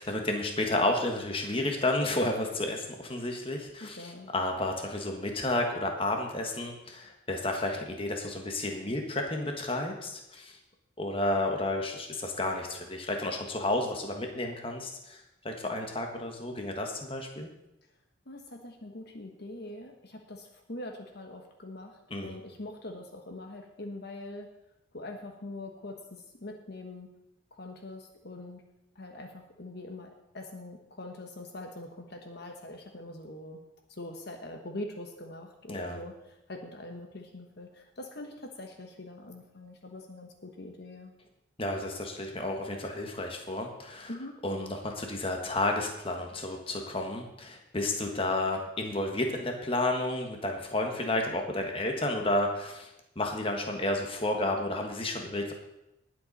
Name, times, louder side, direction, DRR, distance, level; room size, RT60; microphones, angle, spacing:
voice 1, 0.0-10.6 11.0-17.5 22.1-22.4 35.7-36.0 41.6-44.1 44.4-55.5, left 2 dB, 25° left, 3 dB, 1.5 m, -31 dB
voice 2, 3.8-4.3 18.3-24.5 24.9-27.1 27.5-28.6 28.9-33.6 33.9-41.1 44.1-44.4, left 1 dB, 55° left, 3 dB, 1.2 m, -43 dB
19.0 x 7.9 x 4.2 m, 0.90 s
head